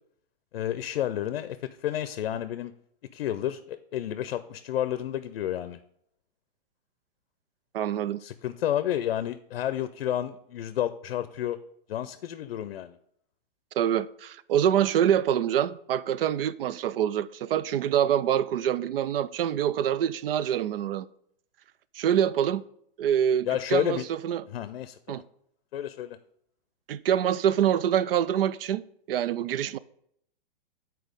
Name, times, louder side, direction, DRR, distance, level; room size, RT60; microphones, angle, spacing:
voice 1, 0.5-1.6 1.8-2.7 3.1-5.8 8.2-11.6 11.9-13.0 23.5-24.1 24.5-25.2 25.7-26.2, left 11 dB, 75° left, 0.6 m, -30 dB
voice 2, 7.7-8.2 13.8-21.1 21.9-22.6 23.0-24.4 25.1-25.2 26.9-29.8, right 10 dB, 75° right, 0.5 m, -25 dB
8.2 x 4.5 x 5.1 m
hypercardioid pair, 155°, 29 cm